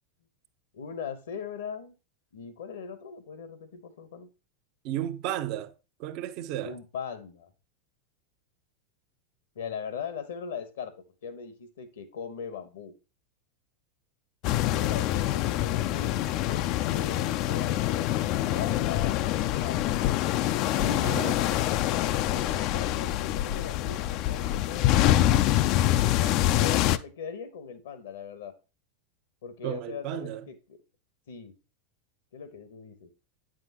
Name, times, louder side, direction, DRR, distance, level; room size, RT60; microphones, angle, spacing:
voice 1, 0.7-1.9 2.3-4.3 6.6-7.5 9.5-10.9 11.2-12.9 14.6-19.9 20.7-25.2 26.1-28.6 29.4-30.8 31.3-31.5 32.3-33.1, left 6 dB, 70° left, 1.0 m, -40 dB
voice 2, 4.8-5.7 6.0-6.8 21.0-21.4 29.6-30.5, right 12 dB, 50° right, 0.7 m, -33 dB
sound 1, 14.4-27.0, left 13 dB, 50° left, 0.4 m, -25 dB
9.0 x 6.2 x 2.9 m
hypercardioid pair, 90°, 0 cm